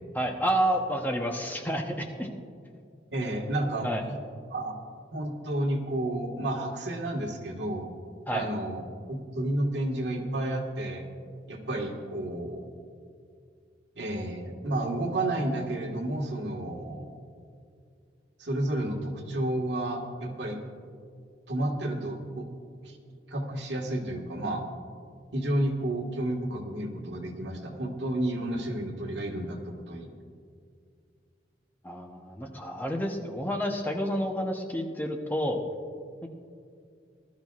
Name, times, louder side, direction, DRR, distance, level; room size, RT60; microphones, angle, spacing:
voice 1, 0.1-2.3 3.8-4.0 8.3-8.5 31.8-35.6 36.2-36.3, equal, 10° left, 2 dB, 0.8 m, -29 dB
voice 2, 3.1-3.9 4.5-4.8 5.1-7.9 8.3-8.8 9.1-11.0 11.5-12.6 14.0-17.1 18.4-20.6 21.5-22.5 22.8-23.0 23.3-24.6 25.3-30.1, right 1 dB, 75° right, 1 dB, 1.6 m, -31 dB
20.5 x 12.5 x 2.4 m, 2.3 s
head